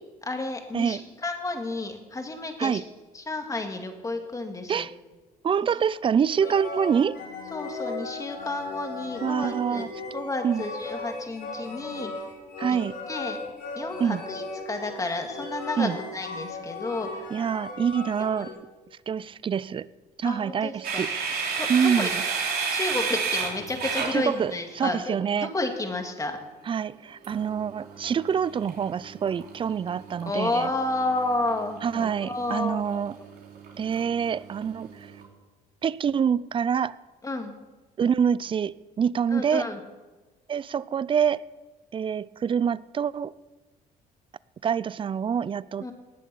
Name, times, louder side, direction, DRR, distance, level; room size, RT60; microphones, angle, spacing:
voice 1, 0.2-2.8 3.1-4.9 6.4-6.5 7.5-9.9 10.1-12.1 12.7-12.8 13.1-13.4 13.7-17.3 18.4-18.6 20.2-21.0 21.6-21.7 22.0-22.1 22.7-26.4 30.3-33.0 33.8-33.9 37.2-37.5 39.3-39.8 45.8-45.9, left 2 dB, 20° left, 2.1 m, -31 dB
voice 2, 5.4-7.2 9.2-9.9 10.4-10.6 12.6-13.0 14.0-14.2 15.8-16.0 17.3-18.5 19.1-19.9 20.2-21.1 21.7-22.2 24.1-25.5 26.7-30.7 31.8-33.2 33.8-35.1 35.8-37.0 38.0-39.7 40.5-41.4 41.9-43.3 44.6-45.9, right 7 dB, 30° right, 0.4 m, -26 dB
sound 1, 6.4-18.5, left 3 dB, 80° left, 5.0 m, -37 dB
sound 2, 20.8-24.9 27.2-35.2, right 5 dB, 65° right, 3.5 m, -33 dB
19.0 x 7.3 x 6.9 m
cardioid pair, 110°, 17 cm